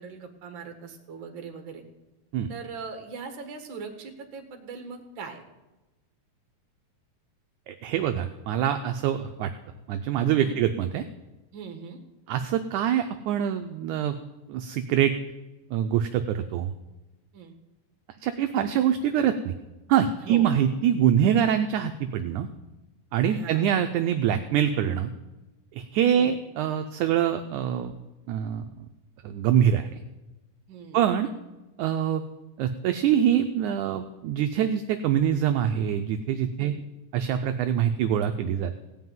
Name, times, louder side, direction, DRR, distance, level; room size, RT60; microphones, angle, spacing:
voice 1, 0.0-1.8 2.5-5.4 10.3-10.6 11.5-12.0 17.3-17.5 20.2-20.5 23.3-23.7 26.1-26.3 30.7-31.0 36.6-36.7, right 5 dB, 45° right, 5 dB, 1.9 m, -40 dB
voice 2, 7.7-9.5 9.9-11.0 12.3-14.1 14.5-15.1 15.7-16.7 18.2-19.5 19.9-22.5 23.1-25.1 25.8-28.0 28.3-28.6 29.2-29.9 30.9-31.3 31.8-32.2 32.6-36.7 37.1-38.8, right 9 dB, 75° right, 7 dB, 1.8 m, -24 dB
17.0 x 5.8 x 9.2 m, 1.1 s
omnidirectional pair, 4.0 m